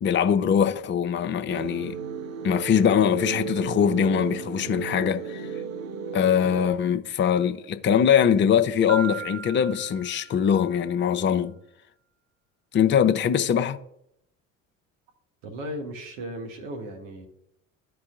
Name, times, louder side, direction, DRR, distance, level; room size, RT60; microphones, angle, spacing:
voice 1, 0.0-2.0 2.4-5.5 6.1-11.5 12.7-13.8, left 8 dB, 30° left, 0.6 m, -22 dB
sound 1, 1.5-6.7, right 6 dB, 85° right, 0.6 m, -34 dB
Piano, 8.9-10.8, right 7 dB, 20° right, 2.1 m, -37 dB
voice 2, 15.4-17.3, equal, 70° right, 1.3 m, -36 dB
14.0 x 4.8 x 2.5 m
figure-of-eight pair, 65°, 39 cm